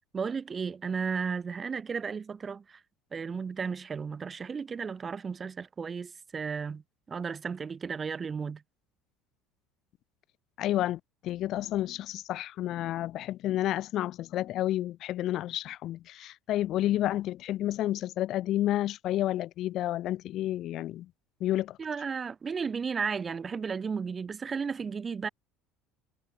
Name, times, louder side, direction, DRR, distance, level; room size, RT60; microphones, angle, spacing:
voice 1, 0.1-2.8 3.1-6.8 7.1-8.6 21.8-25.3, right 5 dB, 25° right, 1.6 m, -34 dB
voice 2, 10.6-21.1 21.4-21.8, left 13 dB, 55° left, 2.3 m, -30 dB
supercardioid pair, 110°, 0 cm